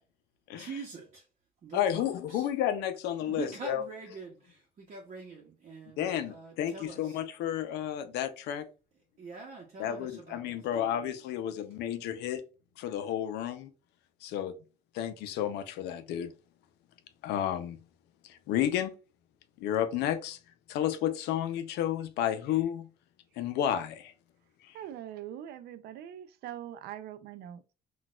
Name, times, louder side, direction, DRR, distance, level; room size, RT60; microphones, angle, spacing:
voice 1, 0.6-1.2 1.6-2.5 3.2-7.2 9.2-11.0, right 4 dB, 45° right, 0.8 m, -45 dB
voice 2, 1.7-3.8 6.0-8.7 9.8-12.4 12.8-13.7 14.2-14.5 14.9-16.3 17.2-17.8 18.2-18.9 19.6-20.4 20.7-22.9 23.4-24.1 24.6-24.8, left 10 dB, 85° left, 0.5 m, -31 dB
voice 3, 24.7-27.6, right 11 dB, 70° right, 0.4 m, -42 dB
4.0 x 2.3 x 2.3 m
cardioid pair, 110°, 17 cm